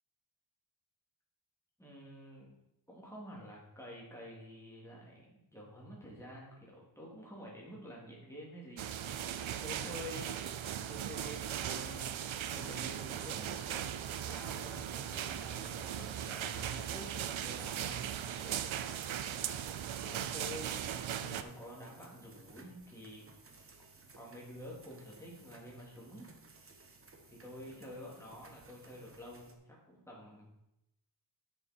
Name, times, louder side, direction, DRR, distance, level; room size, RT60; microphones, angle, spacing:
voice 1, 1.8-2.5 2.9-10.4 10.9-18.1 18.4-18.7 20.0-23.2 24.2-26.3 27.3-30.5, equal, 5° left, -4 dB, 3.0 m, -49 dB
sound 1, 8.8-21.4, right 10 dB, 80° right, 0.7 m, -38 dB
sound 2, 11.2-29.5, right 3 dB, 30° right, 1.1 m, -59 dB
9.7 x 6.6 x 4.5 m, 0.87 s
wide cardioid pair, 130°, 47 cm